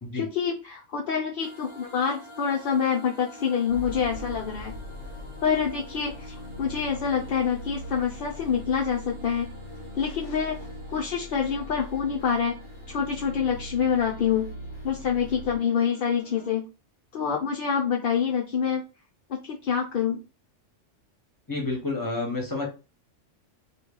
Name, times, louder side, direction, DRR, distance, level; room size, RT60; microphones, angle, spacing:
voice 1, 0.1-4.8 5.4-9.5 10.0-10.6 10.9-12.6 12.9-14.5 14.8-16.7 17.1-18.9 19.3-20.2, left 7 dB, 60° left, 0 dB, 0.6 m, -26 dB
sound 1, 1.4-16.5, right 1 dB, 30° right, 0.6 m, -48 dB
the edge of death, 3.7-15.6, left 1 dB, 90° left, 1.0 m, -41 dB
voice 2, 21.5-22.7, left 3 dB, 20° left, 0 dB, 1.0 m, -29 dB
3.0 x 2.5 x 3.6 m, 0.30 s
omnidirectional pair, 1.3 m